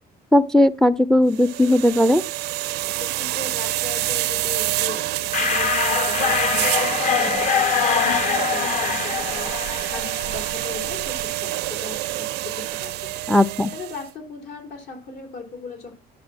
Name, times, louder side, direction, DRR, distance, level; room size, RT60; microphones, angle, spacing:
voice 1, 0.3-2.2 13.3-13.7, left 1 dB, 5° left, 0.4 m, -17 dB
sound 1, 1.3-14.1, right 17 dB, 85° right, 0.5 m, -27 dB
voice 2, 3.0-13.1 13.7-15.9, left 4 dB, 70° left, 3.7 m, -38 dB
sound 2, 5.3-10.9, left 7 dB, 45° left, 1.1 m, -23 dB
10.5 x 5.0 x 7.4 m
cardioid pair, 110°, 17 cm